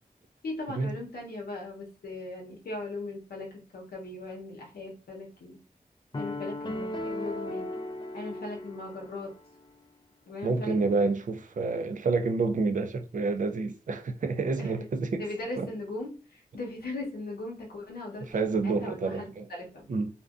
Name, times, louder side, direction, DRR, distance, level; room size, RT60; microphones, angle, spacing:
voice 1, 0.4-5.6 6.1-7.7 8.1-9.3 10.2-11.1 14.6-19.9, left 2 dB, 90° left, 0.8 m, -39 dB
sound 1, 6.1-9.4, left 1 dB, 30° left, 0.4 m, -36 dB
voice 2, 10.4-15.3 15.6-15.7 18.3-19.5 19.9-20.1, right 3 dB, 55° right, 0.4 m, -28 dB
2.5 x 2.1 x 2.3 m
cardioid pair, 45°, 16 cm